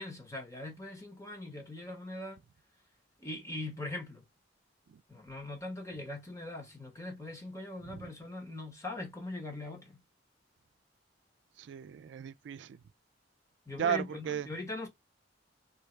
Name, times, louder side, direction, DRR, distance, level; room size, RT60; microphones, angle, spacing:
voice 1, 0.0-2.4 3.2-4.2 5.1-10.0 13.7-14.9, left 2 dB, 15° left, 1.2 m, -41 dB
voice 2, 11.6-12.8 13.8-14.5, right 8 dB, 70° right, 0.3 m, -35 dB
3.3 x 2.8 x 4.3 m
head